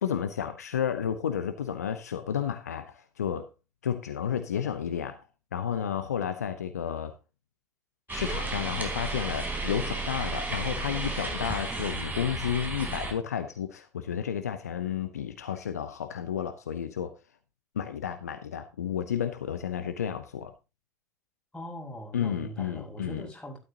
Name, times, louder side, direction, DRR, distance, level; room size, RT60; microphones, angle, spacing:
voice 1, 0.0-3.5 3.8-5.2 5.5-7.1 8.1-17.1 17.7-20.5 22.1-23.3, left 8 dB, 75° left, 0.8 m, -32 dB
sound 1, 8.1-13.1, right 3 dB, 20° right, 3.9 m, -33 dB
voice 2, 21.5-23.6, equal, 10° left, 5.8 m, -41 dB
12.5 x 11.0 x 2.9 m
figure-of-eight pair, 60°, 9 cm